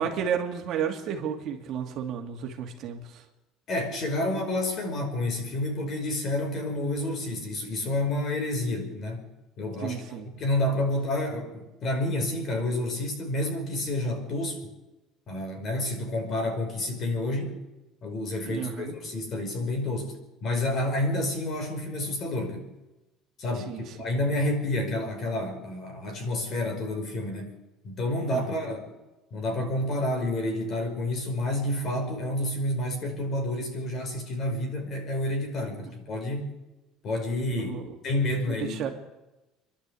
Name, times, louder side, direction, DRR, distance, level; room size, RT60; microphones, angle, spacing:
voice 1, 0.0-3.2 9.8-10.3 18.5-19.0 23.7-23.8 28.3-28.4 37.6-37.9 38.5-38.9, right 8 dB, 45° right, 3 dB, 2.5 m, -32 dB
voice 2, 3.7-9.3 9.6-14.7 15.3-17.6 18.0-20.2 20.4-22.6 23.4-27.5 27.8-28.8 29.3-36.5 37.0-37.7 38.0-38.9, left 1 dB, 35° left, 4 dB, 5.3 m, -29 dB
27.0 x 11.5 x 8.5 m, 1.0 s
cardioid pair, 160°, 0 cm